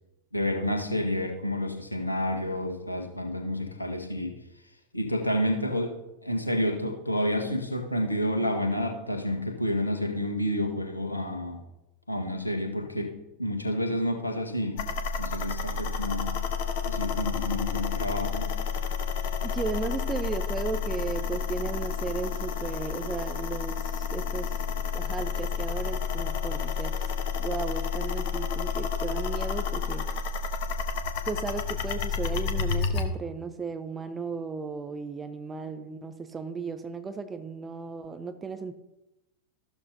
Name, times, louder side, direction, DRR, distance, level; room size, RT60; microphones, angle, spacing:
voice 1, 0.3-4.4 4.9-5.9 6.2-11.6 12.1-14.8 15.2-16.4 16.9-18.5, left 1 dB, 85° left, 3 dB, 1.6 m, -29 dB
sound 1, 14.8-33.0, left 6 dB, 50° left, 1.2 m, -30 dB
voice 2, 19.4-24.6 24.9-30.1 31.2-38.7, right 5 dB, 15° right, 10 dB, 0.8 m, -35 dB
14.0 x 12.5 x 2.8 m, 0.97 s
figure-of-eight pair, 90°, 0 cm